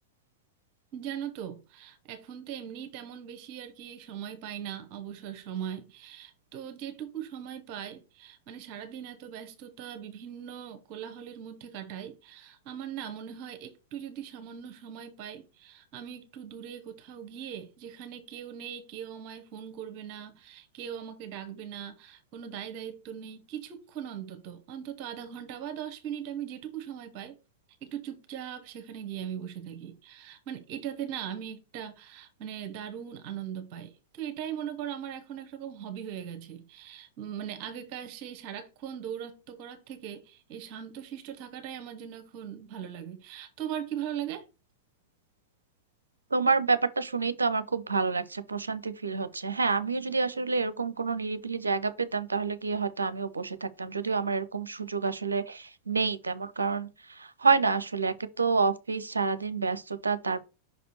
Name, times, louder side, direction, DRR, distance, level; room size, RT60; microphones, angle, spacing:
voice 1, 0.9-27.4 27.8-44.4, right 9 dB, 45° right, 1.0 m, -40 dB
voice 2, 46.3-60.5, right 4 dB, 75° right, 0.6 m, -28 dB
5.6 x 4.2 x 4.1 m
figure-of-eight pair, 90°, 0 cm